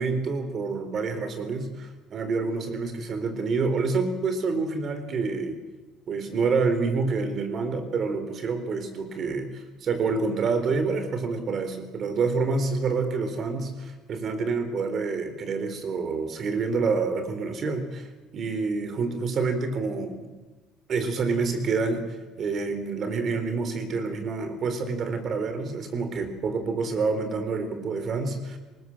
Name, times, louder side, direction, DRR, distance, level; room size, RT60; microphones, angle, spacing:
voice 1, 0.0-5.6 6.1-18.1 18.3-20.3 20.9-28.6, right 4 dB, 50° right, 9 dB, 3.9 m, -27 dB
19.5 x 19.5 x 7.7 m, 1.3 s
supercardioid pair, 90°, 0 cm